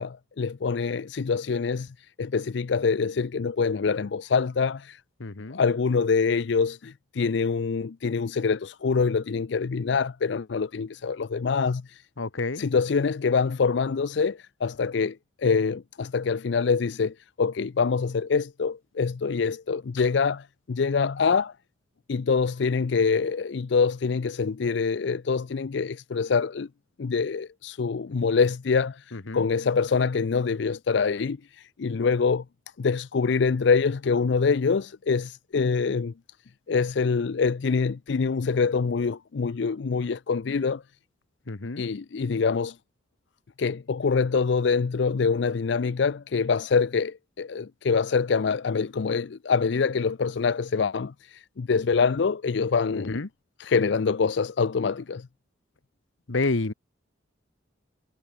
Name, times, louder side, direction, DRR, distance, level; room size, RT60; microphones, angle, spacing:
voice 1, 0.0-5.0 5.5-12.0 12.6-21.5 22.1-26.7 27.0-32.4 32.8-36.1 36.7-40.8 41.8-42.8 43.6-53.2 53.6-55.3, left 5 dB, 65° left, 0.5 m, -25 dB
voice 2, 5.2-5.6 12.2-12.6 29.1-29.4 41.5-41.8 52.9-53.3 56.3-56.7, left 3 dB, 85° left, 1.1 m, -29 dB
head